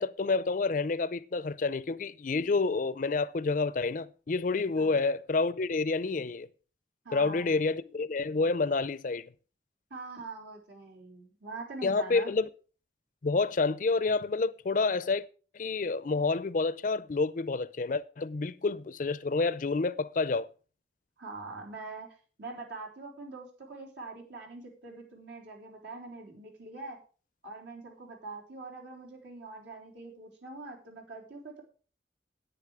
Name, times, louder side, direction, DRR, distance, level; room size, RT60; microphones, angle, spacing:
voice 1, 0.0-6.5 7.1-9.3 11.8-12.5 13.2-15.2 15.5-20.5, left 3 dB, 45° left, 0.5 m, -29 dB
voice 2, 7.0-7.7 9.9-12.3 21.2-22.1 22.4-27.0 27.4-31.6, right 3 dB, 80° right, 3.7 m, -44 dB
9.9 x 9.1 x 4.9 m
head